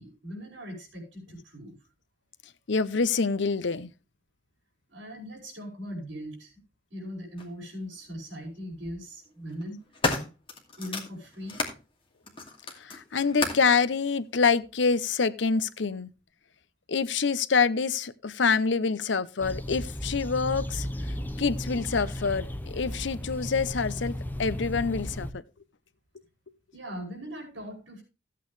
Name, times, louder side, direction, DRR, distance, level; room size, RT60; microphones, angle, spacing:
voice 1, 0.0-1.8 4.9-6.5 6.9-9.8 10.8-11.6 26.7-28.0, equal, 70° right, 5.3 m, -40 dB
voice 2, 2.7-3.9 12.8-16.1 16.9-25.4, left 5 dB, 70° left, 0.7 m, -26 dB
sound 1, 7.4-7.5 8.6-8.9 9.5-11.8 12.2-13.7 14.6-14.7, left 3 dB, 30° left, 2.4 m, -33 dB
sound 2, 19.4-25.3, left 1 dB, 10° left, 0.7 m, -35 dB
15.5 x 8.5 x 3.2 m
head